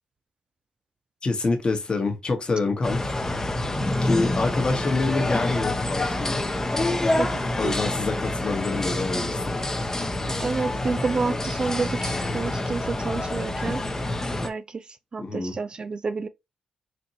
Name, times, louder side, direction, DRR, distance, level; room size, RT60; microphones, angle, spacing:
voice 1, 1.2-3.3 4.0-6.4 7.6-9.5 15.2-15.5, left 3 dB, 40° left, 1.2 m, -26 dB
sound 1, 2.8-14.5, left 1 dB, 20° left, 0.8 m, -27 dB
voice 2, 10.4-13.8 14.4-14.8 15.1-16.3, right 4 dB, 40° right, 0.4 m, -29 dB
4.3 x 2.6 x 2.8 m
supercardioid pair, 60°, 2 cm